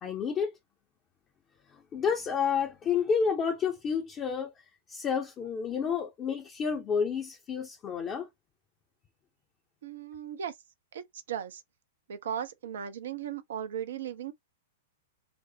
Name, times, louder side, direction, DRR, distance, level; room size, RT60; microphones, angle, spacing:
voice 1, 0.0-0.6 1.9-4.5 4.9-8.3, left 6 dB, 25° left, 0.7 m, -30 dB
voice 2, 9.8-10.5 10.9-11.0 11.3-11.6 12.1-14.3, right 9 dB, 60° right, 0.5 m, -36 dB
5.0 x 2.0 x 2.8 m
figure-of-eight pair, 100°, 0 cm